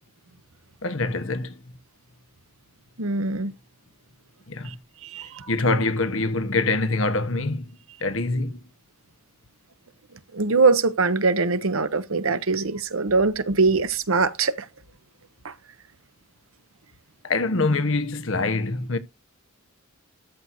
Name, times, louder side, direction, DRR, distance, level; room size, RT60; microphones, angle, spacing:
voice 1, 0.8-1.6 4.5-4.8 5.5-7.7 8.0-8.7 17.2-19.0, left 3 dB, 65° left, 1.2 m, -24 dB
voice 2, 3.0-3.5 5.1-5.3 10.3-14.6 15.4-15.5, right 4 dB, 75° right, 1.0 m, -22 dB
13.5 x 6.3 x 2.7 m
head